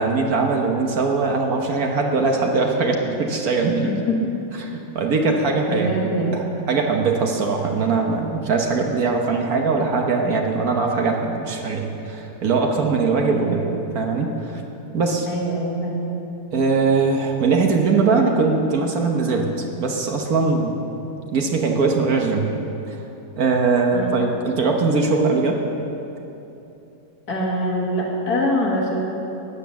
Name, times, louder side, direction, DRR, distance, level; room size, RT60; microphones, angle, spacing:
voice 1, 0.0-4.0 4.6-13.6 13.9-14.6 14.9-15.3 16.5-19.5 19.8-20.9 21.3-22.5 22.9-23.0 23.4-25.6, right 4 dB, 65° right, 2 dB, 1.5 m, -21 dB
voice 2, 3.8-4.2 5.7-6.4 13.3-13.7 15.3-16.1 23.9-24.2 27.3-29.0, equal, 70° left, -3 dB, 2.3 m, -24 dB
13.5 x 9.9 x 7.0 m, 3.0 s
omnidirectional pair, 1.7 m